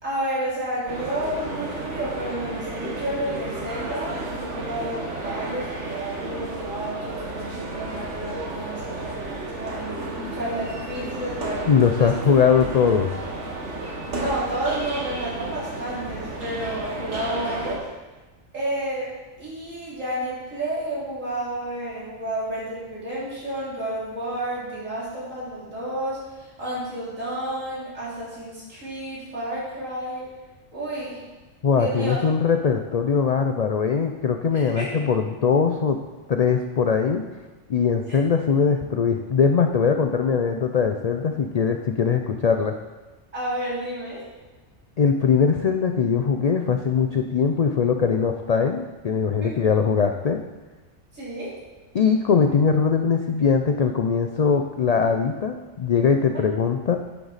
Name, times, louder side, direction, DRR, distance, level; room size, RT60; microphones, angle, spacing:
voice 1, 0.0-10.0 10.3-11.7 12.0-12.2 14.1-17.9 18.5-19.1 19.4-30.3 30.7-31.2 31.8-32.2 34.5-34.9 38.1-38.2 43.3-44.3 49.4-49.6 51.1-51.5, right 1 dB, 80° right, -8 dB, 3.9 m, -31 dB
sound 1, 0.9-17.8, right 2 dB, 65° right, 1.7 m, -33 dB
voice 2, 11.7-13.1 31.6-36.0 36.3-37.3 37.7-42.8 45.0-50.4 51.9-57.0, left 6 dB, 75° left, 5 dB, 0.3 m, -21 dB
10.5 x 7.9 x 4.1 m, 1.2 s
omnidirectional pair, 1.3 m